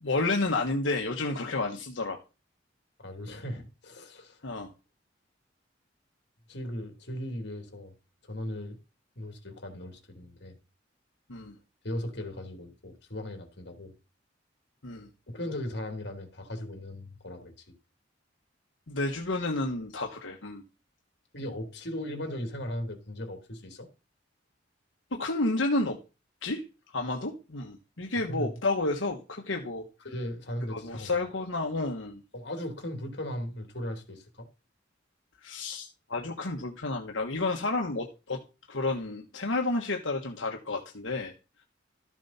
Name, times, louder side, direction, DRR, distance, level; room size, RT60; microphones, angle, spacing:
voice 1, 0.0-2.2 4.4-4.7 11.3-11.5 14.8-15.1 18.9-20.6 25.1-26.0 26.4-26.6 26.9-29.8 30.7-32.2 35.4-38.4 38.7-41.3, left 2 dB, 85° left, 1.4 m, -31 dB
voice 2, 3.0-4.4 6.5-7.9 8.3-8.8 9.1-10.6 11.8-13.9 15.3-17.5 21.3-23.9 28.1-28.6 30.0-31.2 32.3-34.5, left 1 dB, 60° left, 3.0 m, -37 dB
13.0 x 7.3 x 4.3 m
head